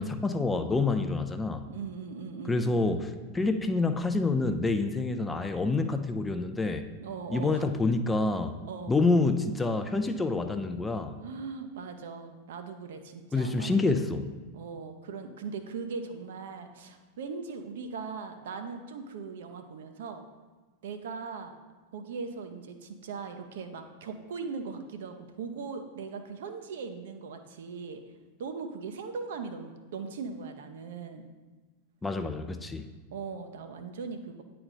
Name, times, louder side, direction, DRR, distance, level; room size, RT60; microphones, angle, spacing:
voice 1, 0.0-1.7 2.5-6.9 7.3-8.5 8.9-11.2 13.3-14.3 32.0-32.8, left 3 dB, 10° left, 7 dB, 0.4 m, -27 dB
voice 2, 1.7-2.7 7.0-7.6 8.6-8.9 11.2-14.1 14.5-20.2 20.8-21.5 21.9-28.0 28.4-31.2 33.1-34.4, right 5 dB, 60° right, 7 dB, 0.6 m, -39 dB
9.5 x 3.3 x 4.0 m, 1.3 s
figure-of-eight pair, 90°, 0 cm